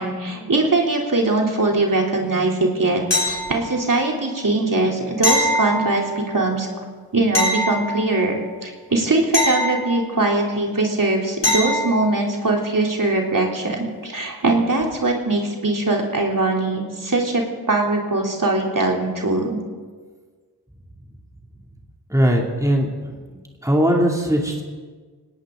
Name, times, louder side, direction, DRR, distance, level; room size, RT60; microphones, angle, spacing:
voice 1, 0.0-6.7 7.1-19.6, right 2 dB, 45° right, 0 dB, 3.3 m, -21 dB
sound 1, 3.1-3.9 5.2-6.3 7.3-8.4 9.3-10.4 11.4-12.0 14.8-14.9, left 1 dB, 75° left, 4.2 m, -23 dB
voice 2, 22.1-23.2 23.6-24.6, equal, 5° right, -1 dB, 2.7 m, -19 dB
19.5 x 18.5 x 3.8 m, 1.4 s
cardioid pair, 45°, 43 cm